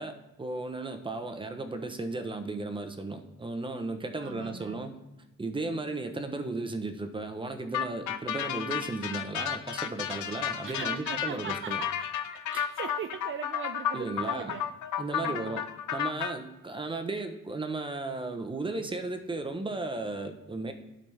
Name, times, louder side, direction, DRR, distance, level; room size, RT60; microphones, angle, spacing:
voice 1, 0.0-5.0 5.4-11.8 13.9-14.5 15.0-15.6 15.9-20.7, right 2 dB, 15° right, 7 dB, 0.9 m, -35 dB
voice 2, 4.2-4.9 10.1-10.3 10.6-14.6 15.2-15.6, right 7 dB, 45° right, 8 dB, 0.5 m, -41 dB
sound 1, 7.7-16.3, left 9 dB, 75° left, 0.7 m, -32 dB
12.0 x 4.0 x 3.4 m, 1.0 s
cardioid pair, 90°, 30 cm